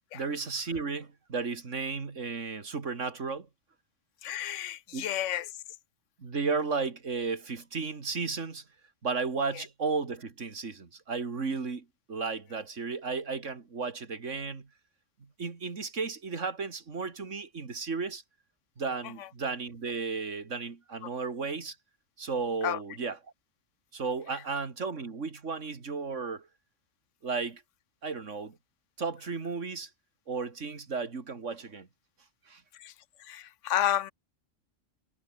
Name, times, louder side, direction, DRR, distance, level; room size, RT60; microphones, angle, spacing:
voice 1, 0.1-3.5 4.9-5.1 6.2-8.6 9.0-14.7 15.2-18.2 18.8-21.8 22.2-23.2 23.9-26.5 27.2-27.6 28.0-28.6 29.0-29.9 30.3-31.9 32.5-32.6, right 4 dB, 75° right, 2.5 m, -34 dB
voice 2, 4.2-5.5 9.5-9.7 19.0-19.3 22.6-22.8 32.7-32.9 33.2-34.1, left 12 dB, 75° left, 1.0 m, -31 dB
omnidirectional pair, 1.3 m